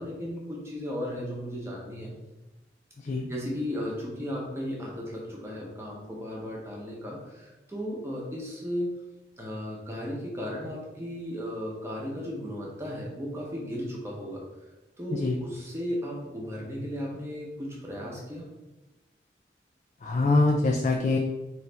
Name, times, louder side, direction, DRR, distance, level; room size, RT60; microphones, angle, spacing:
voice 1, 0.0-2.2 3.3-9.0 9.4-14.4 15.0-18.5, equal, 15° right, -3 dB, 0.8 m, -35 dB
voice 2, 3.0-3.3 15.1-15.4 20.0-21.2, left 2 dB, 40° left, 1 dB, 0.3 m, -24 dB
4.0 x 3.1 x 3.3 m, 1.0 s
head